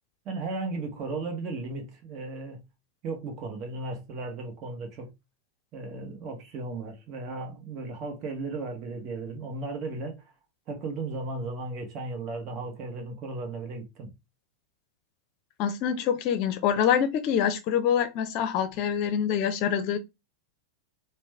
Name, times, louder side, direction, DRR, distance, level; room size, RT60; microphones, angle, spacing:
voice 1, 0.2-2.7 3.0-5.1 5.7-10.3 10.7-14.1, right 3 dB, 35° right, 1.1 m, -35 dB
voice 2, 15.6-20.0, left 8 dB, 40° left, 0.6 m, -25 dB
3.1 x 2.2 x 3.4 m
figure-of-eight pair, 90°, 0 cm